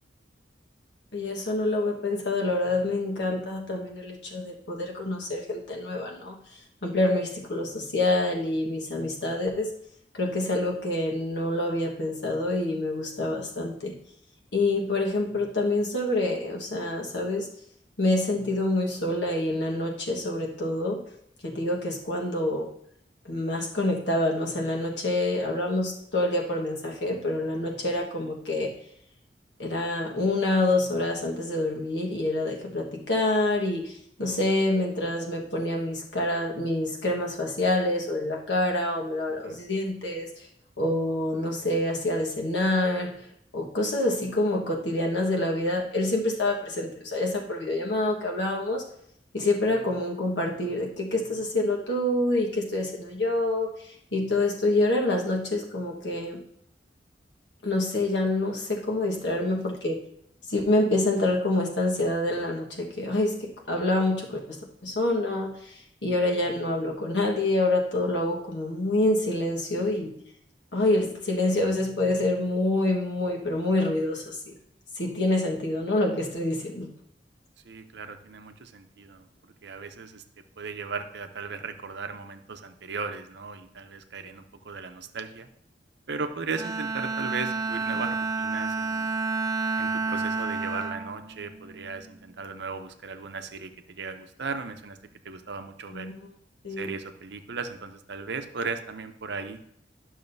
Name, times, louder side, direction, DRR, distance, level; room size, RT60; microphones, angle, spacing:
voice 1, 1.1-6.3 6.8-9.7 10.1-13.9 14.5-17.5 18.0-21.0 21.4-22.7 23.2-28.7 29.6-40.5 40.8-43.1 43.5-48.8 49.3-56.4 57.6-60.0 60.5-70.1 70.7-74.5 75.0-76.9 95.9-96.3 96.6-96.9, left 2 dB, 75° left, 0 dB, 1.4 m, -27 dB
voice 2, 77.6-80.2 80.6-85.5 86.1-89.1 89.8-95.0 95.2-96.1 96.8-99.6, right 4 dB, 70° right, 8 dB, 0.7 m, -37 dB
Bowed string instrument, 86.5-92.1, right 4 dB, 20° right, 0.5 m, -30 dB
10.5 x 6.3 x 2.7 m, 0.69 s
head